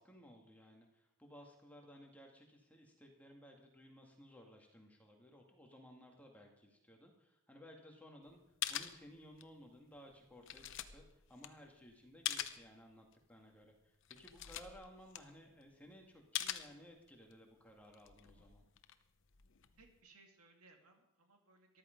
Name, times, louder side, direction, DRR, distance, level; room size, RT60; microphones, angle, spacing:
voice 1, 0.0-8.4 8.7-18.6, equal, 5° left, 1 dB, 2.0 m, -58 dB
sound 1, 8.3-8.4 8.6-9.6 10.0-12.7 13.1-13.2 13.7-13.8 14.0-15.8 16.3-17.3 17.8-20.0, left 11 dB, 60° left, 0.8 m, -44 dB
voice 2, 19.7-21.8, right 3 dB, 80° right, 3 dB, 2.5 m, -65 dB
14.0 x 13.0 x 5.2 m, 0.84 s
head